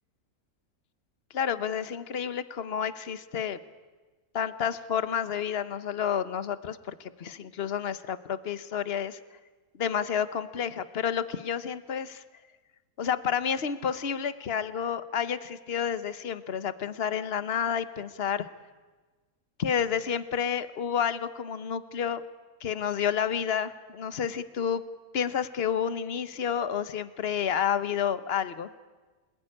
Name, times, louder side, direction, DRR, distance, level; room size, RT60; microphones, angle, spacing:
voice 1, 1.3-3.6 4.3-9.2 9.8-12.2 13.0-18.5 19.6-22.2 22.6-24.8 25.1-28.7, left 8 dB, 45° left, 13 dB, 1.2 m, -30 dB
26.5 x 20.5 x 9.9 m, 1.3 s
omnidirectional pair, 1.6 m